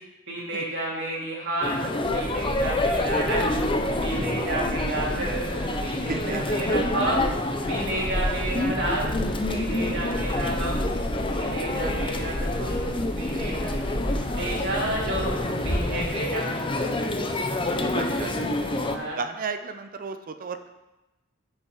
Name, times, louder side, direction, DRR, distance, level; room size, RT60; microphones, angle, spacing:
voice 1, 0.3-1.8 2.1-3.5 4.0-7.2 7.6-9.1 9.5-10.9 11.3-13.8 14.4-15.4 15.6-16.6 18.1-18.5 18.9-19.2, right 1 dB, 60° right, -4 dB, 2.8 m, -31 dB
sound 1, 1.6-19.0, left 1 dB, 25° left, 0.7 m, -28 dB
sound 2, 2.0-16.1, equal, 50° left, 2.5 m, -33 dB
voice 2, 5.9-6.4 11.5-11.7 13.5-13.6 15.9-16.1 17.7-18.6 19.1-20.7, right 4 dB, 45° right, 9 dB, 0.5 m, -34 dB
7.9 x 5.6 x 5.7 m, 1.0 s
head